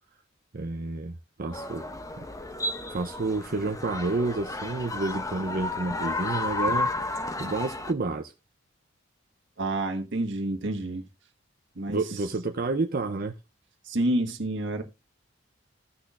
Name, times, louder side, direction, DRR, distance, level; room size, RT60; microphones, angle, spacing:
voice 1, 0.5-1.1 1.4-1.8 2.2-2.3 2.9-6.9 7.4-8.3 11.9-13.3, right 3 dB, 45° right, 0.6 m, -29 dB
sound 1, 1.5-7.9, left 2 dB, 15° left, 0.7 m, -32 dB
voice 2, 9.6-11.0 11.7-12.2 13.8-14.8, right 1 dB, 60° right, 1.6 m, -29 dB
16.5 x 6.2 x 2.5 m
head